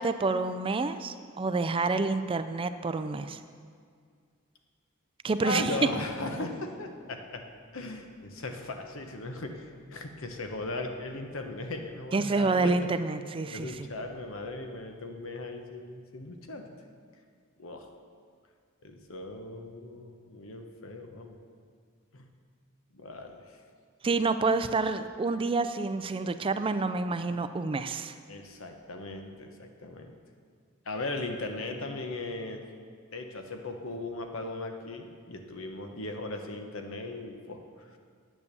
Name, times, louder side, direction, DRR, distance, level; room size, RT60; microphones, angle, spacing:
voice 1, 0.0-3.4 5.2-5.8 12.1-13.9 24.0-28.2, right 3 dB, 25° right, 11 dB, 0.4 m, -28 dB
voice 2, 5.4-7.4 7.7-12.9 13.5-16.7 17.6-17.9 18.8-21.4 22.1-22.3 22.9-23.6 28.3-30.1 30.8-32.6 33.1-38.0, left 2 dB, 70° left, 5 dB, 1.1 m, -38 dB
9.5 x 8.4 x 6.9 m, 2.1 s
head